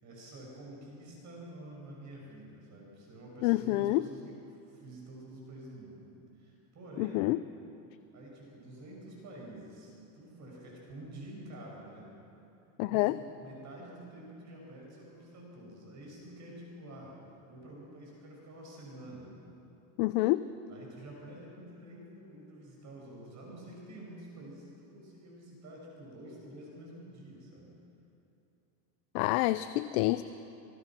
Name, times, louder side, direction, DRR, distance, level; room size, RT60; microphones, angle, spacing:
voice 1, 0.0-6.0 6.3-7.3 8.1-12.1 12.8-17.2 17.5-19.3 20.7-27.7, right 1 dB, 35° right, -2 dB, 6.5 m, -48 dB
voice 2, 3.4-4.0 7.0-7.4 12.8-13.2 20.0-20.4 29.1-30.2, left 18 dB, 60° left, 13 dB, 0.7 m, -27 dB
27.0 x 18.5 x 6.1 m, 2.8 s
supercardioid pair, 145°, 50 cm